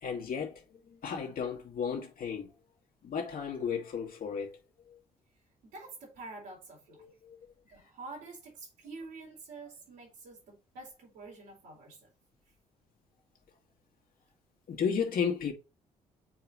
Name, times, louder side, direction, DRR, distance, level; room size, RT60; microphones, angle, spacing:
voice 1, 0.0-2.6 3.0-4.6 4.9-5.0 7.0-7.5 14.7-15.5, left 6 dB, 50° left, 2.0 m, -34 dB
voice 2, 5.6-7.1 7.7-12.1, right 3 dB, 65° right, 4.0 m, -47 dB
8.8 x 4.7 x 3.1 m
figure-of-eight pair, 40°, 19 cm